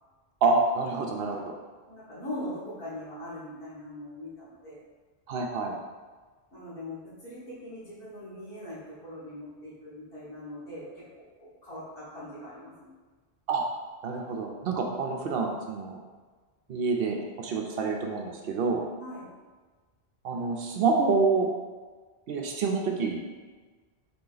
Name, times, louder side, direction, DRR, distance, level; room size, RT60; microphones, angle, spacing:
voice 1, 0.4-1.5 5.3-5.7 13.5-13.6 14.0-16.0 16.7-18.9 20.2-21.5 22.3-23.2, right 4 dB, 70° right, 1 dB, 0.8 m, -27 dB
voice 2, 1.9-4.8 6.5-12.9 19.0-19.3, left 1 dB, 65° left, -10 dB, 1.9 m, -41 dB
3.9 x 2.8 x 3.9 m, 1.4 s
omnidirectional pair, 1.0 m